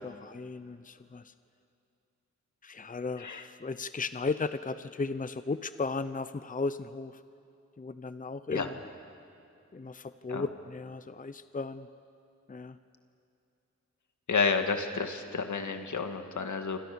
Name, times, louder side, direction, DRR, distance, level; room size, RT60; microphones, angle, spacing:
voice 1, 0.0-1.3 2.6-7.2 7.8-8.8 9.7-11.9 12.5-12.8, left 4 dB, 30° left, 13 dB, 0.7 m, -35 dB
voice 2, 14.3-16.8, left 5 dB, 80° left, 6 dB, 1.9 m, -30 dB
27.0 x 26.0 x 7.0 m, 2.7 s
wide cardioid pair, 95°, 29 cm